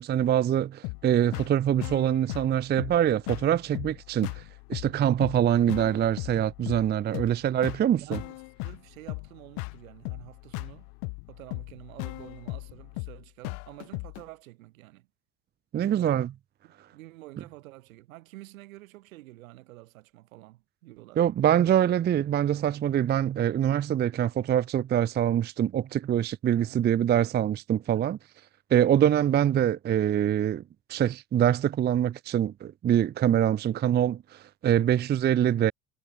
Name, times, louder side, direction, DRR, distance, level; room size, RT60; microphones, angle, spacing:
voice 1, 0.0-4.4 4.7-8.2 15.7-16.3 21.2-28.2 28.7-30.6 30.9-35.7, right 10 dB, 25° right, 0.5 m, -24 dB
sound 1, 0.8-14.2, left 40 dB or more, 60° left, 0.7 m, -38 dB
voice 2, 7.1-7.5 8.0-10.9 11.3-15.1 15.8-16.3 16.6-21.2 26.5-26.8 27.9-28.1 34.8-35.0, right 19 dB, 75° right, 3.7 m, -49 dB
hypercardioid pair, 70°, 41 cm